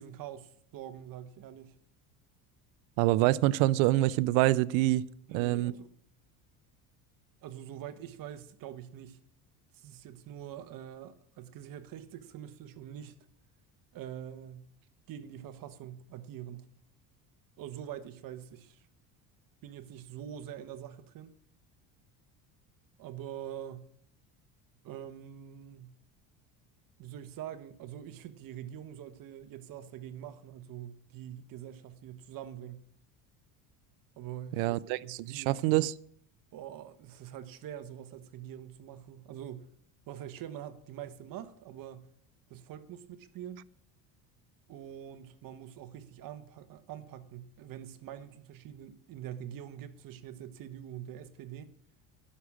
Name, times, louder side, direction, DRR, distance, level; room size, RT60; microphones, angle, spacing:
voice 1, 0.0-1.7 5.3-5.9 7.4-9.2 9.7-13.2 13.9-14.7 15.1-16.7 17.6-18.8 19.6-21.3 23.0-23.9 24.8-25.9 27.0-32.8 34.2-35.6 36.5-39.7 40.1-42.1 42.5-43.6 44.7-51.7, right 10 dB, 55° right, 1.2 m, -44 dB
voice 2, 3.0-5.1 5.3-5.7 34.5-35.9, right 17 dB, 85° right, 0.6 m, -26 dB
11.5 x 6.3 x 8.5 m
supercardioid pair, 110°, 40 cm